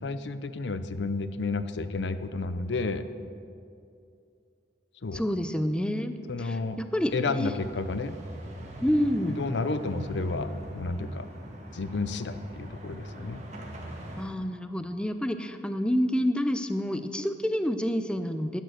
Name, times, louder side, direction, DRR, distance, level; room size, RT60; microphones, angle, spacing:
voice 1, 0.0-3.0 5.0-5.2 6.3-6.8 7.1-8.1 9.3-10.5 10.7-11.3 11.7-13.4, left 3 dB, 75° left, 12 dB, 0.6 m, -31 dB
voice 2, 5.1-7.5 8.8-9.4 14.2-18.6, equal, 5° left, 9 dB, 0.5 m, -28 dB
sound 1, 6.6-14.2, equal, 40° right, 1.9 m, -42 dB
12.0 x 9.2 x 6.4 m, 2.5 s
head